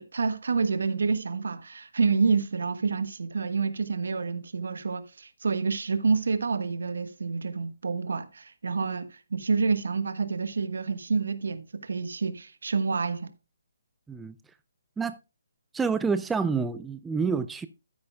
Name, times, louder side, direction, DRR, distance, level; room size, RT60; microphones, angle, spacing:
voice 1, 0.0-13.3, right 4 dB, 70° right, 1.3 m, -28 dB
voice 2, 15.7-17.7, right 5 dB, 10° right, 0.4 m, -28 dB
12.5 x 9.6 x 2.2 m
figure-of-eight pair, 140°, 0 cm